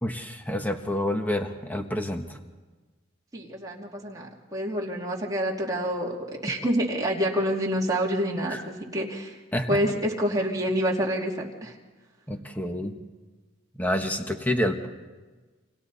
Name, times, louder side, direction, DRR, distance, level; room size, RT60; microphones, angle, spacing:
voice 1, 0.0-2.4 8.5-8.6 9.5-9.8 12.3-12.9 13.8-14.8, left 1 dB, 10° left, 4 dB, 1.3 m, -28 dB
voice 2, 3.3-9.4 9.7-11.7, equal, 20° right, -3 dB, 2.7 m, -27 dB
30.0 x 26.0 x 4.2 m, 1.3 s
head